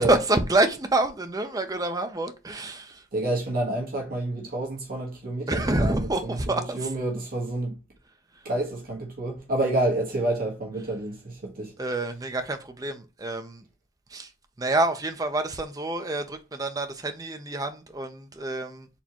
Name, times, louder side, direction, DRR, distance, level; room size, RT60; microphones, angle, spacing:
voice 1, 0.0-3.0 5.5-6.8 11.8-13.6 14.1-14.3 14.6-18.9, right 2 dB, 20° right, 0.6 m, -27 dB
voice 2, 3.1-7.8 8.4-11.7, right 1 dB, 45° right, 1.4 m, -29 dB
4.2 x 3.5 x 2.9 m
head